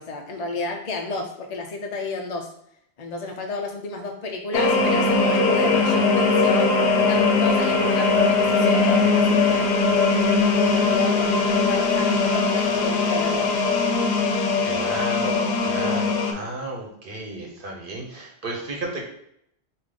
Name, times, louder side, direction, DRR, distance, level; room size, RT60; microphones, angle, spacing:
voice 1, 0.0-2.5 3.0-13.5, left 3 dB, 50° left, 2 dB, 0.5 m, -32 dB
sound 1, 4.5-16.3, left 3 dB, 70° left, 0.9 m, -20 dB
voice 2, 14.6-19.1, right 2 dB, 55° right, -1 dB, 1.0 m, -33 dB
5.0 x 2.4 x 3.7 m, 0.73 s
omnidirectional pair, 1.1 m